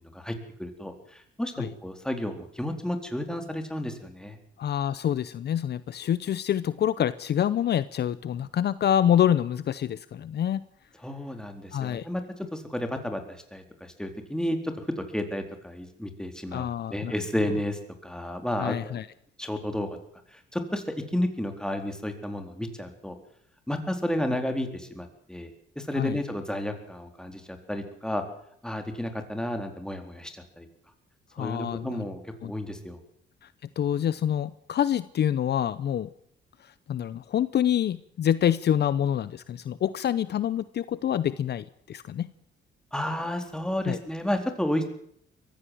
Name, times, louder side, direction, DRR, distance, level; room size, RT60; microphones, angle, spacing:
voice 1, 0.1-4.4 11.0-12.2 12.5-19.0 19.4-19.9 20.3-20.8 21.1-23.2 23.7-25.5 25.8-28.2 28.6-30.7 31.4-33.0 42.9-44.8, left 1 dB, 5° left, 6 dB, 4.0 m, -32 dB
voice 2, 4.6-10.6 11.7-12.1 16.5-17.1 18.6-19.1 26.0-26.2 31.3-32.0 32.4-32.5 33.4-33.5 33.8-36.1 36.6-42.3 43.9-44.0, left 10 dB, 55° left, 16 dB, 0.8 m, -26 dB
22.5 x 15.5 x 7.8 m, 0.68 s
cardioid pair, 90°, 20 cm